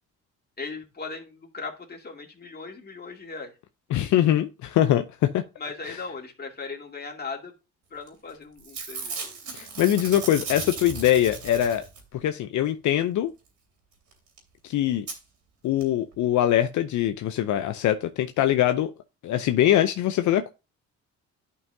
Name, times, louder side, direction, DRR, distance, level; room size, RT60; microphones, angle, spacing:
voice 1, 0.6-3.5 5.6-7.5 7.9-9.1, left 4 dB, 30° left, 2.3 m, -38 dB
voice 2, 3.9-5.4 5.9-6.0 9.5-11.8 12.1-13.3 14.6-15.1 15.6-18.9 19.2-20.5, left 12 dB, 75° left, 0.6 m, -23 dB
Packing tape duct tape / Tearing, 8.1-8.3 8.6-12.2 14.1-14.2 14.4-14.5 15.1-15.2 15.8-15.9 16.1-16.2, right 4 dB, 75° right, 3.0 m, -36 dB
11.0 x 5.5 x 2.7 m
cardioid pair, 90°, 30 cm